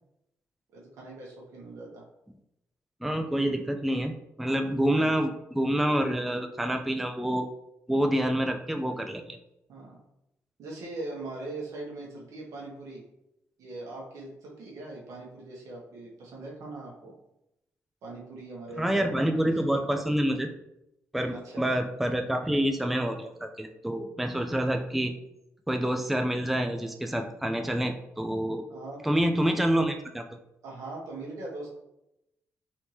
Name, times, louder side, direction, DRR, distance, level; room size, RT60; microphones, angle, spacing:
voice 1, 0.7-2.0 4.8-5.2 9.7-10.0 10.6-13.0 13.6-17.1 18.0-19.8 21.3-21.7 28.7-29.0 30.6-31.7, right 2 dB, 80° right, -2 dB, 1.1 m, -41 dB
voice 2, 3.0-4.1 4.4-7.5 7.9-9.4 18.8-20.5 21.1-25.1 25.7-28.6 29.0-30.2, right 1 dB, 5° right, 5 dB, 0.3 m, -27 dB
3.5 x 2.7 x 3.1 m, 0.85 s
cardioid pair, 95°, 5 cm